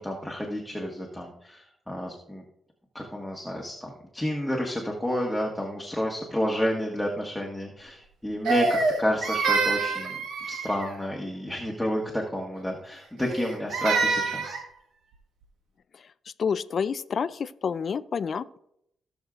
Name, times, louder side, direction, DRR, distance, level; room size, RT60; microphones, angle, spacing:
voice 1, 0.0-2.4 2.9-10.2 10.4-14.6, equal, 5° left, -2 dB, 1.6 m, -30 dB
Crying sobbing, 8.5-11.0 13.2-14.6, right 4 dB, 90° right, 1.2 m, -26 dB
voice 2, 16.4-18.6, left 6 dB, 55° left, 13 dB, 0.4 m, -29 dB
16.5 x 6.5 x 2.5 m, 0.76 s
cardioid pair, 85°, 0 cm